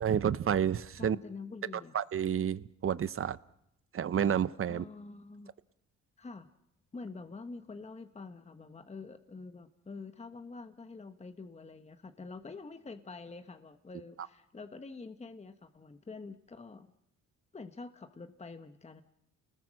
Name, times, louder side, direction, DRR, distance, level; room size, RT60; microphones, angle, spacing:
voice 1, 0.0-1.2 1.9-3.4 3.9-4.8, right 9 dB, 45° right, 16 dB, 0.8 m, -30 dB
voice 2, 1.0-2.0 4.7-5.5 6.2-6.5 6.9-16.9 17.5-19.0, left 4 dB, 20° left, 8 dB, 1.2 m, -46 dB
29.0 x 20.5 x 6.4 m, 0.79 s
cardioid pair, 90°, 30 cm